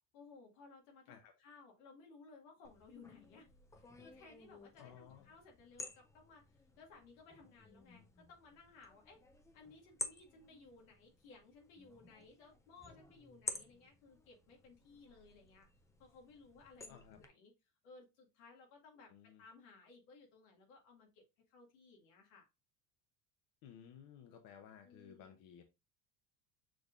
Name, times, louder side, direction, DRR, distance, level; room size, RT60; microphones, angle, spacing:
voice 1, 0.1-3.5 3.7-6.4 6.8-9.2 9.5-15.7 16.0-17.5 17.8-22.5 24.8-25.3, left 4 dB, 90° left, 2.0 m, -60 dB
sound 1, 2.6-17.3, left 2 dB, 10° left, 0.3 m, -52 dB
voice 2, 4.8-5.3 16.9-17.2 19.1-19.4 23.6-25.6, left 9 dB, 60° left, 0.8 m, -57 dB
6.2 x 3.6 x 2.4 m
cardioid pair, 130°, 39 cm